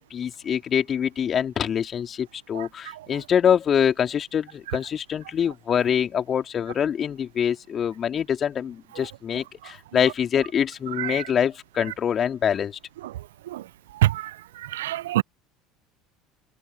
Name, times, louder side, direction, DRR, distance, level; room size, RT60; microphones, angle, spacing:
voice 1, 0.0-12.8, left 8 dB, 40° left, 2.9 m, -25 dB
voice 2, 14.7-15.2, right 14 dB, 75° right, 0.4 m, -22 dB
figure-of-eight pair, 65°, 0 cm